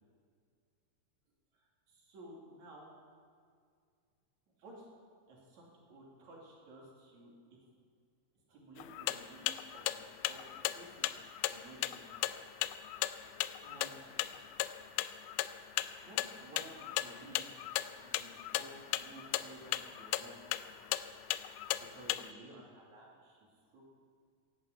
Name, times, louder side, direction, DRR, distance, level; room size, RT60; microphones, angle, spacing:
voice 1, 1.5-2.9 4.6-4.9 5.3-7.3 7.6-7.7 8.5-10.0 10.3-11.1 11.5-12.2 13.6-14.2 16.0-17.5 18.0-20.4 21.7-23.4 23.7-23.9, right 2 dB, 65° right, -3 dB, 4.0 m, -54 dB
sound 1, 8.8-22.3, left 15 dB, 90° left, 2.1 m, -36 dB
11.0 x 11.0 x 8.6 m, 2.1 s
omnidirectional pair, 3.6 m